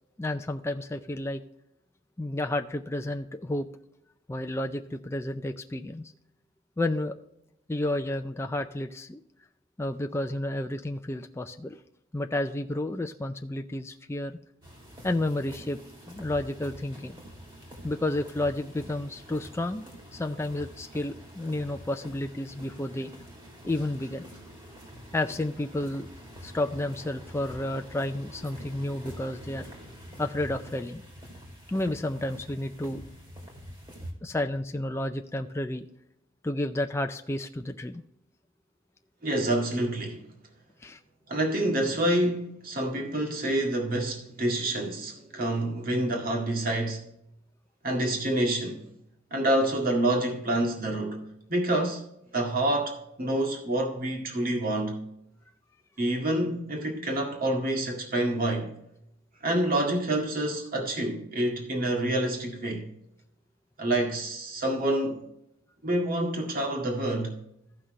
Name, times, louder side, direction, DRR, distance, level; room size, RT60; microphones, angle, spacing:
voice 1, 0.2-1.4 2.2-3.7 4.3-6.0 6.8-7.2 7.7-9.2 9.8-11.8 12.1-14.4 15.0-15.8 16.1-17.2 17.8-19.9 20.1-23.1 23.6-24.2 25.1-26.1 26.4-29.7 30.2-31.0 31.7-33.0 34.2-35.8 36.4-38.0 40.8-41.0, left 1 dB, 15° left, 0.4 m, -31 dB
sound 1, 14.6-34.1, equal, 25° right, 2.5 m, -46 dB
voice 2, 39.2-40.2 41.3-47.0 47.8-48.8 49.3-51.2 51.5-52.0 52.3-55.0 56.0-58.7 59.4-62.9 63.8-65.2 65.8-67.4, right 1 dB, 45° right, 2.0 m, -27 dB
15.0 x 6.0 x 3.2 m
head